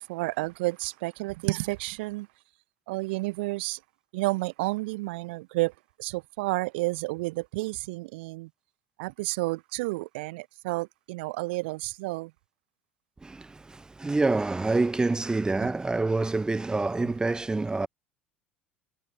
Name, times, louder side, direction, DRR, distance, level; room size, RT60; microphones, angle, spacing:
voice 1, 0.0-2.3 2.9-3.8 4.1-5.7 6.0-8.5 9.0-12.3 15.6-15.7 17.0-17.1, right 23 dB, 65° right, 0.5 m, -31 dB
voice 2, 13.2-17.9, right 3 dB, 10° right, 0.5 m, -27 dB
figure-of-eight pair, 70°, 6 cm